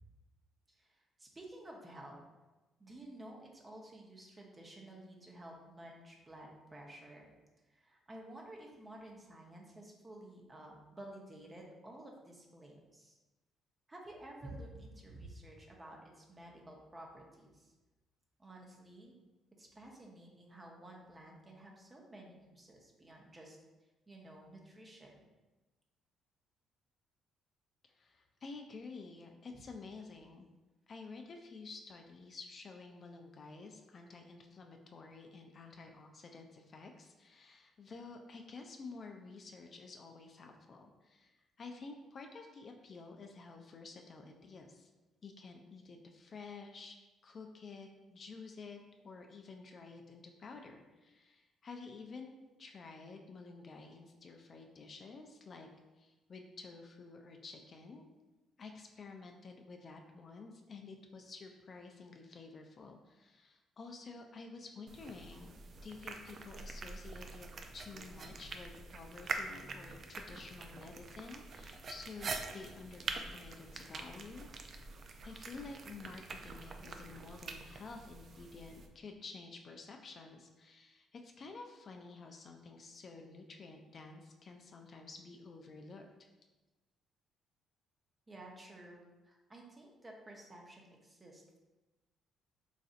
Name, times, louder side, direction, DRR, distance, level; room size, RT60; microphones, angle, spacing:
voice 1, 0.8-2.2 2.8-7.3 7.7-13.2 13.9-17.7 18.4-19.1 19.6-23.6 24.1-25.2 29.5-29.6 88.3-91.6, right 1 dB, 25° right, -1 dB, 0.7 m, -52 dB
voice 2, 27.9-30.5 30.9-44.9 45.2-47.0 47.2-48.8 49.0-52.3 52.6-55.7 56.0-58.0 58.6-65.5 65.8-74.7 75.2-86.1, left 4 dB, 45° left, 3 dB, 0.3 m, -51 dB
sound 1, 64.9-78.9, right 4 dB, 50° right, 0.3 m, -45 dB
3.9 x 2.5 x 2.4 m, 1.1 s
supercardioid pair, 80°, 0 cm